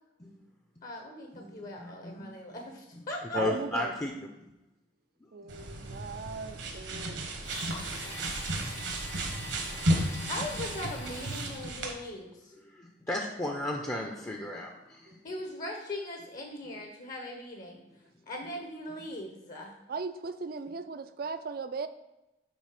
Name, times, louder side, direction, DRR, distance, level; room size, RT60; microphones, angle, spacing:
voice 1, 0.8-3.6 10.3-12.5 15.2-17.8 18.3-19.7, left 1 dB, 45° left, 2 dB, 0.8 m, -40 dB
voice 2, 1.3-2.7 3.3-4.5 12.6-15.2, left 1 dB, 15° left, 1 dB, 0.5 m, -35 dB
voice 3, 3.3-4.0 5.3-7.6 15.1-15.2 19.9-21.9, right 4 dB, 50° right, 10 dB, 0.4 m, -38 dB
sound 1, 5.5-11.9, right 1 dB, 65° right, 1.1 m, -33 dB
Domestic sounds home sounds, 7.4-11.8, left 3 dB, 75° left, 1.3 m, -45 dB
6.2 x 4.1 x 5.8 m, 0.96 s
head